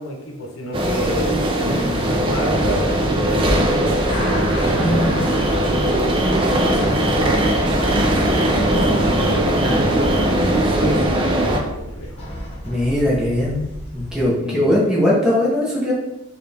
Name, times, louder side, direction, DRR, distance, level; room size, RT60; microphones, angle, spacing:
voice 1, 0.0-3.7 4.2-9.8 10.7-12.2 14.4-14.8, equal, 75° left, 0 dB, 0.8 m, -30 dB
sound 1, 0.7-11.6, right 1 dB, 25° right, 0.4 m, -19 dB
sound 2, 3.8-14.3, equal, 30° left, 0.9 m, -32 dB
voice 2, 4.6-5.2 9.6-9.8 12.6-13.6 13.9-15.9, left 1 dB, 5° right, -6 dB, 0.8 m, -20 dB
sound 3, 5.3-10.3, right 3 dB, 75° right, 0.7 m, -34 dB
4.7 x 2.4 x 3.3 m, 0.95 s
head